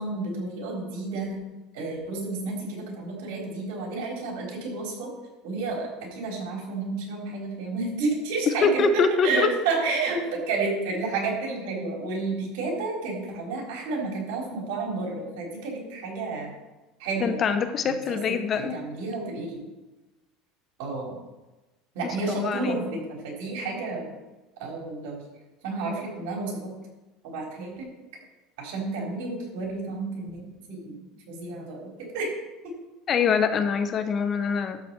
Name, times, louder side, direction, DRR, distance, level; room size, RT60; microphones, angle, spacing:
voice 1, 0.0-1.4 1.7-5.1 5.4-16.5 17.0-17.5 17.8-19.7 20.8-21.2 21.9-24.2 24.6-25.2 25.6-26.7 27.2-27.9 28.6-32.3 32.6-32.7, right 3 dB, 75° right, -1 dB, 4.0 m, -31 dB
voice 2, 8.6-9.5 17.2-18.8 22.3-22.8 33.1-34.8, left 5 dB, 35° left, 9 dB, 0.8 m, -24 dB
12.5 x 4.2 x 7.4 m, 1.1 s
supercardioid pair, 130°, 0 cm